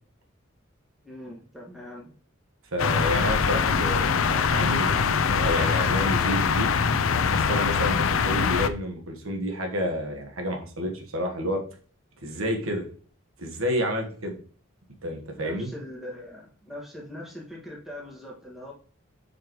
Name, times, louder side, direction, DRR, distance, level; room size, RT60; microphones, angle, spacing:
voice 1, 1.0-2.1 14.2-14.3 15.4-18.7, left 1 dB, ahead, -3 dB, 1.8 m, -41 dB
voice 2, 2.7-6.7 7.3-11.6 12.2-12.8 13.4-14.4 15.0-15.7, equal, 85° right, 3 dB, 1.4 m, -29 dB
sound 1, 2.8-8.7, left 6 dB, 80° left, 0.5 m, -23 dB
7.7 x 5.0 x 3.1 m, 0.43 s
head